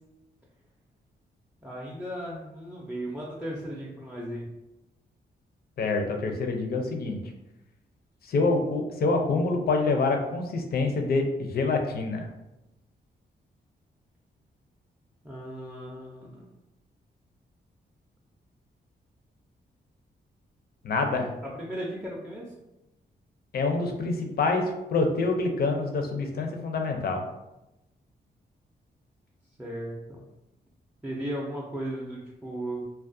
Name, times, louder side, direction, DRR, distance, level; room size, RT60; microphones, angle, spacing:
voice 1, 1.6-4.5 15.2-16.5 21.4-22.5 29.6-30.3 31.0-32.8, right 1 dB, 5° right, -4 dB, 0.4 m, -36 dB
voice 2, 5.8-7.2 8.2-12.3 20.8-21.3 23.5-24.6 24.9-27.3, left 3 dB, 55° left, 4 dB, 0.5 m, -26 dB
2.3 x 2.1 x 2.5 m, 0.95 s
cardioid pair, 85°, 19 cm